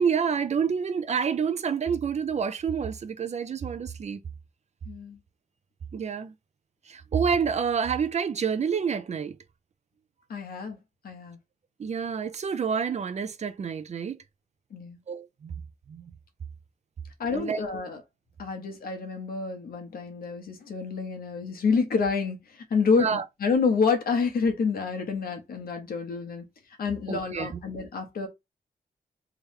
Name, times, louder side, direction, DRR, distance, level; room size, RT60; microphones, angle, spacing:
voice 1, 0.0-4.2 5.9-6.3 6.9-9.4 11.8-14.2 15.1-15.5 15.9-16.1 17.3-17.6 23.0-23.2 27.1-27.6, right 6 dB, 50° right, 0.5 m, -28 dB
voice 2, 4.9-5.2 10.3-10.8 11.0-11.4 14.7-15.0 17.2-18.0 18.4-22.4 22.7-26.4 26.8-28.3, left 5 dB, 85° left, 1.2 m, -28 dB
3.5 x 3.0 x 3.5 m
wide cardioid pair, 155°, 15 cm